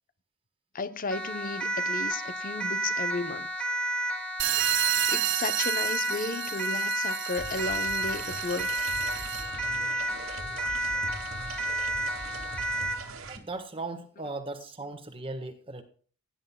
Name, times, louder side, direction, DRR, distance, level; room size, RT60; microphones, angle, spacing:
voice 1, 0.7-3.5 5.1-8.7, left 3 dB, 40° left, 0.8 m, -34 dB
Siren, 1.1-13.1, right 1 dB, 5° left, 1.5 m, -31 dB
sound 1, 4.4-9.6, right 15 dB, 55° right, 0.6 m, -31 dB
sound 2, 7.4-13.4, right 3 dB, 75° right, 2.2 m, -41 dB
voice 2, 13.3-15.8, right 2 dB, 25° right, 1.3 m, -37 dB
17.0 x 10.0 x 2.3 m
head